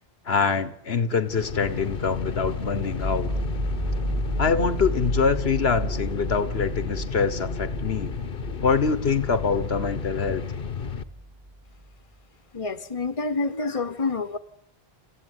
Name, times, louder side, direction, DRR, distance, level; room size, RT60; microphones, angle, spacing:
voice 1, 0.3-3.3 4.4-8.1 8.6-10.4, left 5 dB, 80° left, 12 dB, 1.5 m, -24 dB
sound 1, 1.2-11.0, left 6 dB, 60° left, 1.3 m, -33 dB
sound 2, 2.1-11.9, right 1 dB, 35° right, 3.1 m, -33 dB
voice 2, 12.5-14.4, left 3 dB, 35° left, 11 dB, 1.3 m, -28 dB
29.0 x 15.0 x 9.9 m, 0.71 s
omnidirectional pair, 1.0 m